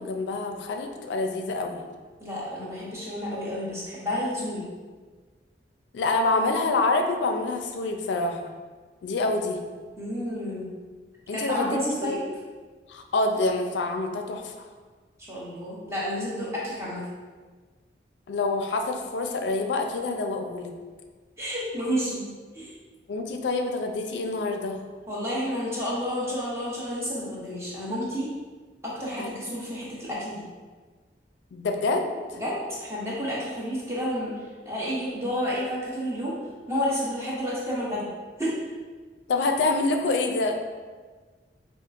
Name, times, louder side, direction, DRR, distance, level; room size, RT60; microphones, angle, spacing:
voice 1, 0.0-1.8 5.9-8.4 9.0-9.6 11.3-12.2 12.9-14.7 18.3-20.7 23.1-24.8 29.2-29.3 31.5-32.1 39.3-40.5, left 3 dB, 85° left, 4 dB, 0.4 m, -26 dB
voice 2, 2.2-4.6 10.0-10.7 11.3-12.2 15.3-17.0 21.4-22.2 22.5-22.7 25.1-28.3 28.8-30.4 32.4-34.3 34.7-36.4 36.7-38.0 38.4-38.5, equal, 15° right, -6 dB, 0.8 m, -30 dB
5.1 x 2.4 x 2.4 m, 1.4 s
head